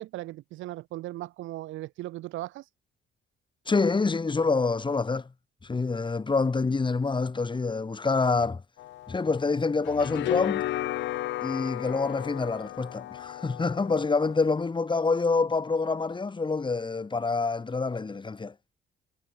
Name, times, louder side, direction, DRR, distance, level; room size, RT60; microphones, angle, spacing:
voice 1, 0.0-2.7, right 16 dB, 80° right, 2.1 m, -37 dB
voice 2, 3.7-5.3 5.6-8.6 9.1-10.6 11.4-18.5, left 4 dB, 25° left, 3.3 m, -27 dB
sound 1, 8.8-14.4, left 15 dB, 70° left, 0.8 m, -34 dB
cardioid pair, 95°, 20 cm